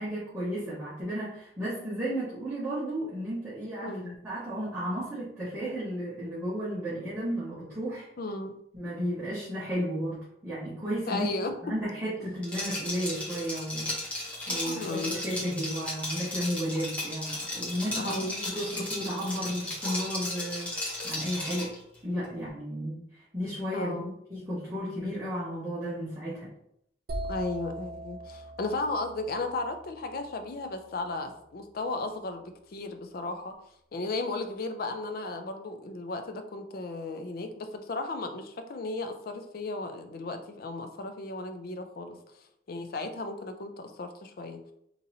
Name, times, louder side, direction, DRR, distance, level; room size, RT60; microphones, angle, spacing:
voice 1, 0.0-3.9 4.2-8.1 8.7-11.3 11.6-18.2 18.4-21.7 22.0-24.0 24.3-26.5, equal, 15° right, -13 dB, 1.3 m, -33 dB
voice 2, 3.8-4.1 8.2-8.6 11.1-11.5 14.7-15.2 17.9-18.4 23.7-24.1 27.3-33.5 33.9-42.2 42.7-44.6, left 2 dB, 55° left, 6 dB, 0.4 m, -35 dB
Liquid, 12.4-21.8, left 1 dB, 5° left, 0.9 m, -35 dB
sound 1, 27.1-30.9, right 1 dB, 50° right, 0.5 m, -40 dB
3.9 x 3.0 x 2.7 m, 0.73 s
head